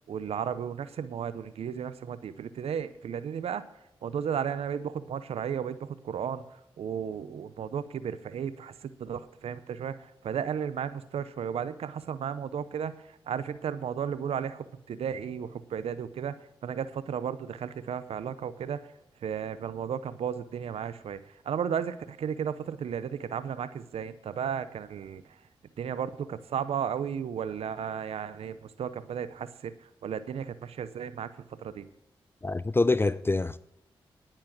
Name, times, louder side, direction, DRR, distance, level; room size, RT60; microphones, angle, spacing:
voice 1, 0.1-3.6 4.0-18.9 19.2-25.4 25.8-29.7 30.0-31.9, right 8 dB, 80° right, 0.7 m, -34 dB
voice 2, 32.4-33.6, left 3 dB, 25° left, 0.5 m, -25 dB
9.9 x 8.8 x 5.9 m
supercardioid pair, 45°, 10 cm